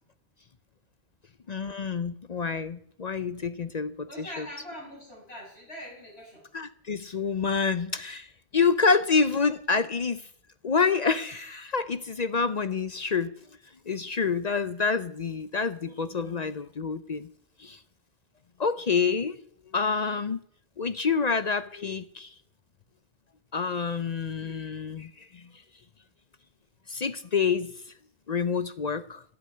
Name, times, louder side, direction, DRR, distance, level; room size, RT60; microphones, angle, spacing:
voice 1, 1.5-4.5 6.5-10.2 10.6-13.3 13.9-17.3 17.6-17.8 18.6-19.4 19.7-20.4 20.8-22.3 23.5-25.5 26.9-27.7 28.3-29.2, left 5 dB, 45° left, 0.7 m, -27 dB
voice 2, 4.1-6.4, equal, 80° left, 8.4 m, -42 dB
11.5 x 8.5 x 9.8 m
omnidirectional pair, 1.1 m